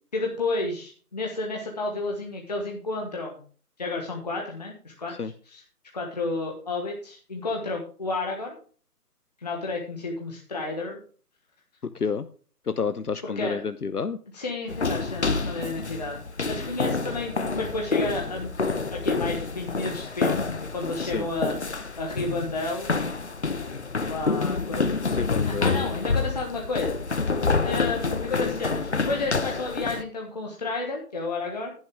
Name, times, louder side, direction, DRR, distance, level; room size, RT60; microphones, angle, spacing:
voice 1, 0.1-3.4 3.8-5.1 5.4-5.6 5.9-8.5 9.4-11.0 13.3-13.6 14.3-18.5 18.9-21.6 22.0-22.9 24.0-25.0 25.4-27.0 27.6-31.7, left 3 dB, 25° left, 0 dB, 1.4 m, -31 dB
voice 2, 12.7-14.2 21.0-21.3 25.2-25.8, left 5 dB, 70° left, 12 dB, 0.9 m, -29 dB
sound 1, 14.7-30.0, left 4 dB, 45° left, 1.0 m, -28 dB
11.0 x 10.5 x 3.5 m, 0.41 s
figure-of-eight pair, 160°, 47 cm